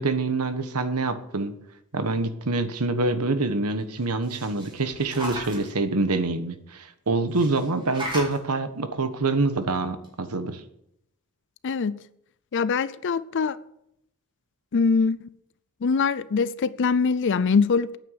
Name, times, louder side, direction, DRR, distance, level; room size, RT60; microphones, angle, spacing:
voice 1, 0.0-1.5 1.9-10.6, right 3 dB, 90° right, 1.3 m, -26 dB
sound 1, 4.0-5.7 7.3-8.4 9.6-9.7 10.0-10.1, equal, 20° right, 4.0 m, -36 dB
voice 2, 11.6-12.0 12.5-13.6 14.7-15.2 15.8-18.0, left 5 dB, 55° left, 0.5 m, -23 dB
9.4 x 8.8 x 8.0 m
head